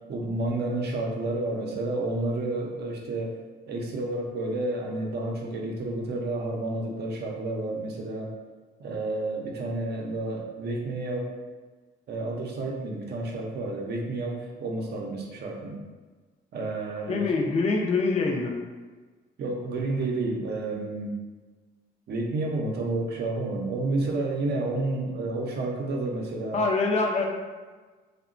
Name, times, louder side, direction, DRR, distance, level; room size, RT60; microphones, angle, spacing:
voice 1, 0.1-3.4 3.7-8.3 8.8-11.3 12.1-15.8 16.5-17.2 19.4-21.2 22.1-26.6, right 2 dB, 55° right, 0 dB, 0.6 m, -30 dB
voice 2, 17.1-18.6 26.5-27.2, left 3 dB, 35° left, 1 dB, 0.4 m, -24 dB
2.8 x 2.1 x 2.5 m, 1.3 s
cardioid pair, 90°, 20 cm